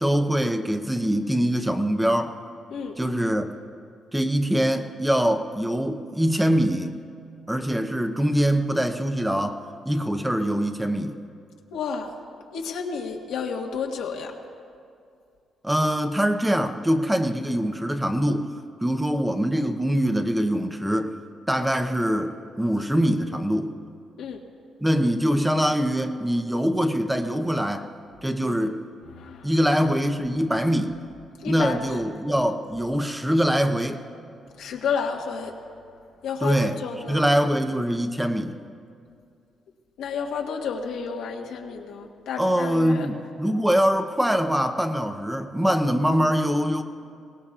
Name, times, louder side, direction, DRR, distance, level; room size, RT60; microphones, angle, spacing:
voice 1, 0.0-2.3 3.0-3.5 4.1-7.0 7.5-11.2 15.6-18.5 18.8-21.1 21.5-23.7 24.8-27.9 28.2-28.8 29.4-31.0 31.5-34.0 36.4-36.8 37.1-38.6 42.4-46.8, equal, 5° right, 7 dB, 0.7 m, -23 dB
voice 2, 11.7-12.1 12.5-14.3 24.2-24.4 29.2-29.5 31.4-31.8 34.6-35.5 36.2-37.3 40.0-43.1, left 6 dB, 90° left, 0 dB, 1.5 m, -31 dB
23.0 x 18.5 x 2.4 m, 2.4 s
cardioid pair, 110°, 0 cm